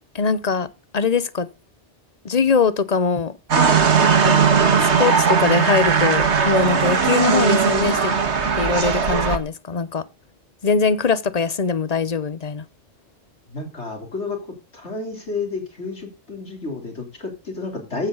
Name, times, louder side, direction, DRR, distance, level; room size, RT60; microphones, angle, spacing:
voice 1, 0.1-0.7 0.9-1.5 2.2-3.3 4.2-4.4 5.0-8.1 8.6-10.0 10.6-12.6, left 5 dB, 40° left, 0.8 m, -21 dB
sound 1, 3.5-9.4, right 6 dB, 75° right, 1.8 m, -18 dB
voice 2, 13.5-18.1, left 3 dB, 75° left, 3.9 m, -31 dB
15.0 x 11.5 x 3.9 m
omnidirectional pair, 1.2 m